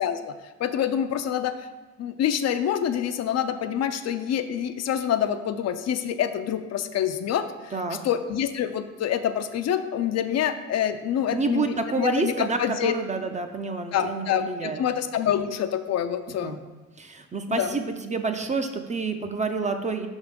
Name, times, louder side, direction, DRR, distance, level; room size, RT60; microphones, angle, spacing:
voice 1, 0.0-1.5 2.0-7.7 8.0-12.9 13.9-16.6 17.5-17.8, left 9 dB, 60° left, 9 dB, 0.4 m, -26 dB
voice 2, 11.3-14.8 16.3-16.6 17.0-20.1, right 4 dB, 25° right, 6 dB, 0.5 m, -28 dB
5.4 x 3.6 x 5.1 m, 1.2 s
cardioid pair, 90°, 30 cm